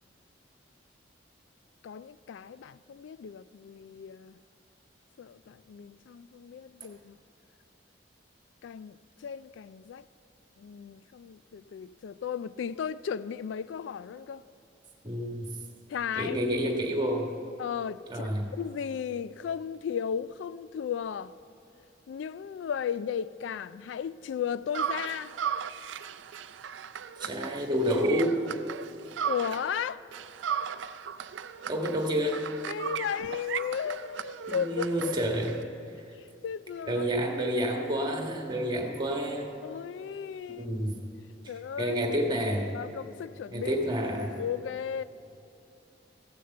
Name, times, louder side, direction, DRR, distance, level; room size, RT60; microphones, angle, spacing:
voice 1, 1.8-4.4 5.2-7.2 8.6-10.0 10.6-14.4 15.9-16.5 17.6-21.3 22.1-25.3 29.3-30.0 32.7-35.3 36.2-37.0 39.6-40.7 41.5-42.0 42.7-43.8 44.4-45.0, left 8 dB, 80° left, 0.3 m, -35 dB
voice 2, 15.0-15.5 16.1-17.3 18.1-18.5 27.2-28.4 31.7-32.5 34.5-35.5 36.9-39.5 40.5-40.9 41.4-42.7 43.5-44.3, equal, 25° right, 1.5 m, -29 dB
sound 1, 24.7-29.8 30.1-35.6, right 8 dB, 80° right, 0.4 m, -36 dB
15.0 x 6.5 x 7.9 m
head